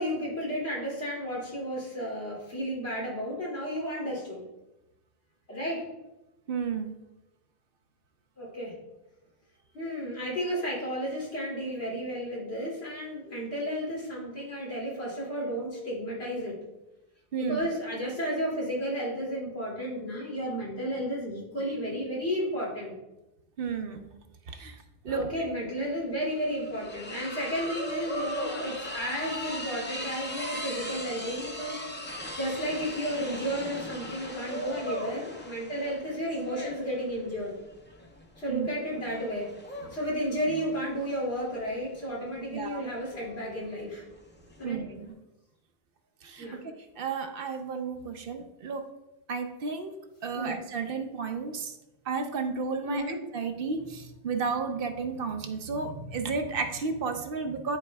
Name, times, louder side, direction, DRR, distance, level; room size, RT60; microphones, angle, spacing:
voice 1, 0.0-4.4 5.5-5.9 8.4-8.7 9.7-16.6 17.4-22.9 25.1-37.5 38.4-44.0 44.6-44.8 46.4-46.6 50.3-50.6 52.8-53.2, equal, 90° left, -6 dB, 2.7 m, -33 dB
voice 2, 6.5-7.0 17.3-17.6 23.6-24.1 24.5-25.3 38.5-38.7 42.5-42.8 44.6-45.1 46.2-46.5 47.0-48.9 49.3-51.7 52.0-57.8, right 5 dB, 65° right, 7 dB, 0.8 m, -33 dB
sound 1, 25.4-25.5 25.8-44.6, left 1 dB, 10° left, 0.6 m, -39 dB
11.0 x 4.3 x 2.2 m, 0.98 s
omnidirectional pair, 1.1 m